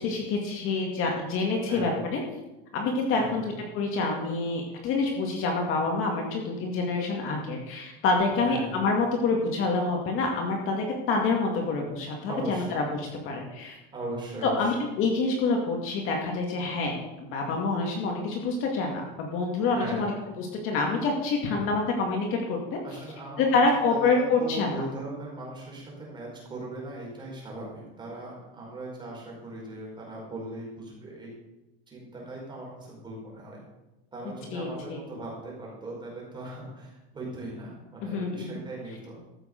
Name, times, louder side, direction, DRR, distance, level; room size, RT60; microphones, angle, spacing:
voice 1, 0.0-2.2 2.7-3.4 3.7-13.8 14.4-20.1 20.4-22.8 23.4-24.8 34.5-35.0 38.0-38.5, left 3 dB, 40° left, 1 dB, 2.2 m, -27 dB
voice 2, 1.7-2.0 3.1-3.5 8.3-8.9 12.3-12.9 13.9-14.8 19.6-20.2 22.8-23.4 23.7-31.3 31.9-33.6 34.1-39.2, right 2 dB, 15° right, -3 dB, 4.8 m, -39 dB
14.0 x 6.8 x 6.6 m, 0.98 s
supercardioid pair, 160°, 32 cm